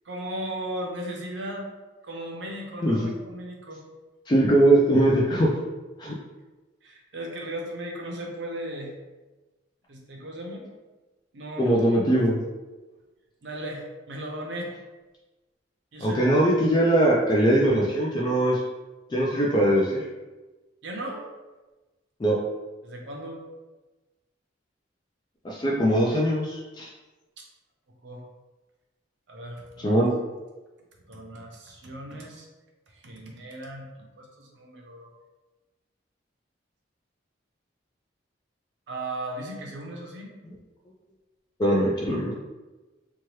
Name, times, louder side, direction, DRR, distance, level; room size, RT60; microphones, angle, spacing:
voice 1, 0.0-1.7 2.0-3.8 6.8-8.9 9.9-10.7 11.3-11.8 13.4-14.7 15.9-16.4 20.8-21.2 22.8-23.4 27.4-27.5 28.0-28.2 29.3-30.0 31.1-32.5 32.9-35.1 38.9-40.3, right 1 dB, 65° right, 0 dB, 0.6 m, -36 dB
voice 2, 4.3-5.5 6.0-6.2 11.6-12.4 16.0-18.6 19.1-20.1 22.2-22.4 25.4-26.9 29.8-30.1 41.6-42.3, right 1 dB, 25° left, -3 dB, 0.3 m, -21 dB
2.8 x 2.2 x 3.1 m, 1.2 s
head